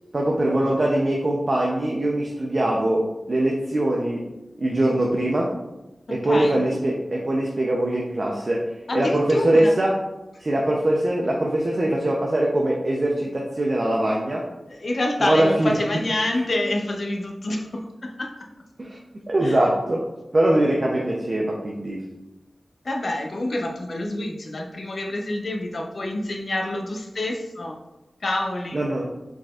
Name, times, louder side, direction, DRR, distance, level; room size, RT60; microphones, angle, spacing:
voice 1, 0.1-4.3 4.6-5.5 6.1-8.6 8.9-10.0 10.4-14.4 15.2-15.8 18.8-19.0 19.3-20.0 20.3-22.0 28.7-29.0, right 1 dB, 45° right, -2 dB, 0.6 m, -22 dB
voice 2, 6.1-6.6 8.9-9.8 14.7-17.9 18.2-18.3 19.4-19.6 22.8-27.7 28.2-28.8, left 1 dB, 60° left, 1 dB, 0.7 m, -27 dB
4.7 x 4.2 x 2.4 m, 0.98 s
wide cardioid pair, 75°, 0 cm